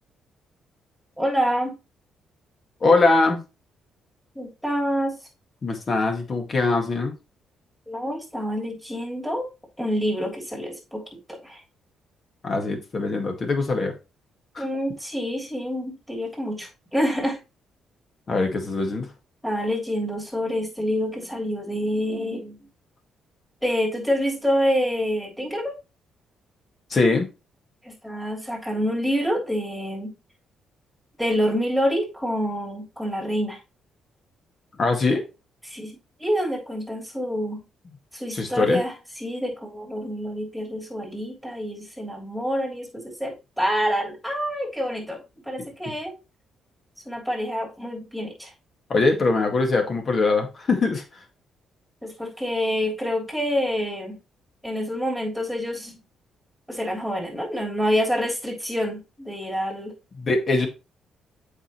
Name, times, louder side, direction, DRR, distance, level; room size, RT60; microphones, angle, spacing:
voice 1, 1.2-1.8 4.3-5.2 7.9-9.5 9.8-11.6 14.6-17.4 19.4-22.6 23.6-25.7 27.8-30.1 31.2-33.6 35.7-35.9 36.2-37.6 38.1-45.2 45.4-46.1 47.0-48.5 52.0-54.2 54.6-56.0 56.7-59.9, equal, ahead, 3.2 m, -27 dB
voice 2, 2.8-3.4 5.6-7.1 12.4-13.9 14.6-14.7 18.3-19.1 26.9-27.3 34.8-35.3 38.3-38.8 48.9-51.0 60.2-60.7, left 3 dB, 40° left, 1.9 m, -22 dB
8.0 x 5.2 x 3.1 m
cardioid pair, 90°, 0 cm